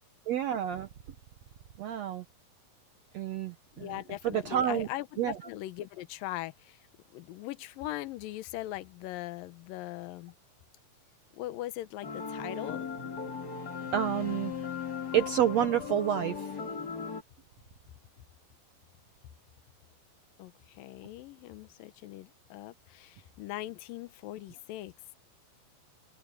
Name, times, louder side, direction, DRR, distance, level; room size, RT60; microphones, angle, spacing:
voice 1, 0.3-0.9 1.8-2.2 3.1-4.0 4.2-4.9 5.2-5.4 13.9-14.5 15.1-16.5, right 10 dB, 75° right, 1.6 m, -29 dB
voice 2, 3.7-6.8 7.1-10.3 11.3-12.8 20.4-24.9, left 15 dB, 75° left, 2.6 m, -40 dB
sound 1, 12.0-17.2, left 6 dB, 35° left, 2.0 m, -37 dB
omnidirectional pair, 4.1 m